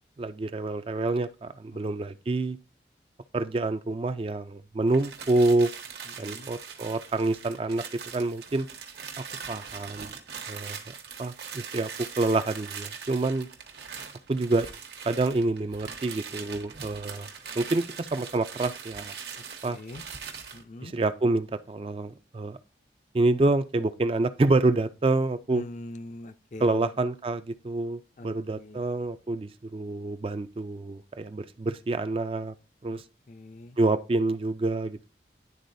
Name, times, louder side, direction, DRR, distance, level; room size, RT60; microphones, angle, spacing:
voice 1, 0.2-2.6 3.3-5.7 6.2-7.8 8.1-8.7 9.5-10.1 10.5-10.8 11.2-11.9 12.2-13.5 14.3-14.7 15.1-17.3 17.6-19.1 19.6-19.8 20.8-22.6 23.1-25.6 26.6-32.5 32.8-33.0 33.8-35.1, right 2 dB, 30° right, 0.3 m, -27 dB
sound 1, 4.9-20.6, right 6 dB, 70° right, 1.2 m, -41 dB
voice 2, 6.1-6.5 19.6-20.0 20.5-20.9 25.5-26.9 28.2-28.8 32.9-33.0 33.3-33.8, left 2 dB, 40° left, 0.4 m, -43 dB
11.0 x 4.0 x 2.6 m
head